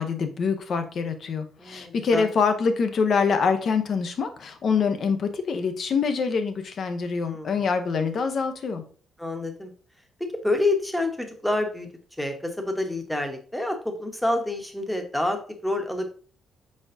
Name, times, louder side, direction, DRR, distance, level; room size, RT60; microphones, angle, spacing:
voice 1, 0.0-8.8, left 5 dB, 55° left, 8 dB, 0.7 m, -25 dB
voice 2, 1.6-2.3 7.2-7.6 9.2-9.7 10.4-11.9 12.2-16.1, left 2 dB, 5° left, 5 dB, 0.9 m, -28 dB
4.7 x 4.2 x 2.6 m, 0.43 s
cardioid pair, 90°, 0 cm